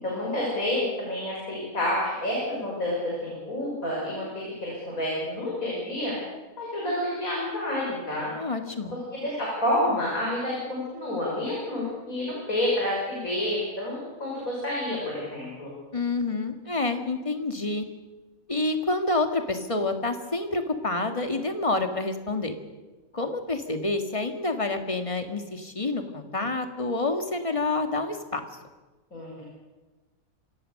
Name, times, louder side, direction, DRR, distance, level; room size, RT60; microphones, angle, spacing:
voice 1, 0.0-3.0 3.2-4.3 4.6-6.1 6.6-8.3 9.1-15.7 29.1-29.4, left 1 dB, 70° left, -4 dB, 6.4 m, -29 dB
voice 2, 8.4-8.9 15.9-17.9 18.5-22.5 23.1-28.4, left 2 dB, 20° left, 6 dB, 1.9 m, -28 dB
25.5 x 17.5 x 6.6 m, 1.2 s
omnidirectional pair, 1.5 m